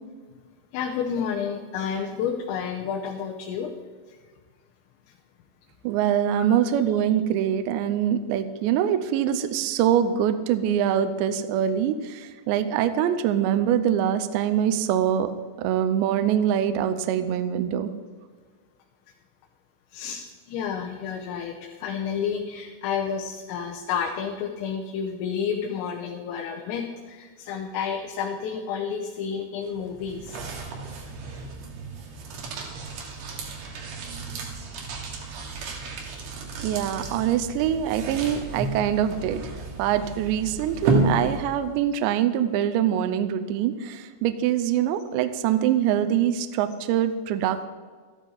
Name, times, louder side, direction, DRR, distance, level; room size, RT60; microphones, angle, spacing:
voice 1, 0.7-3.7 4.1-4.2 6.4-6.5 19.9-30.4, left 7 dB, 85° left, 0 dB, 3.6 m, -30 dB
voice 2, 5.8-15.3 15.6-17.9 36.6-39.5 39.8-47.7, right 10 dB, 80° right, 10 dB, 2.6 m, -24 dB
sound 1, 29.6-41.8, right 3 dB, 65° right, 3.4 m, -32 dB
13.5 x 12.5 x 3.9 m, 1.5 s
omnidirectional pair, 5.8 m